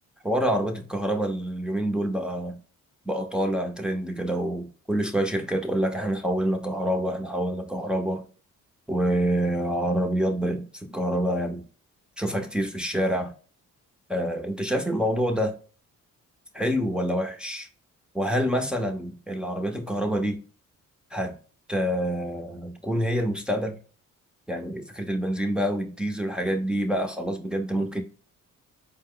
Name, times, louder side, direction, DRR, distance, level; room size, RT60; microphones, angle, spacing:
voice 1, 0.2-2.6 3.0-8.2 8.9-11.6 12.2-13.3 14.1-15.5 16.5-17.7 18.1-20.4 21.1-21.3 21.7-23.7 24.5-28.0, equal, 5° right, 0.8 m, -27 dB
4.5 x 2.2 x 3.7 m
cardioid pair, 80°, 34 cm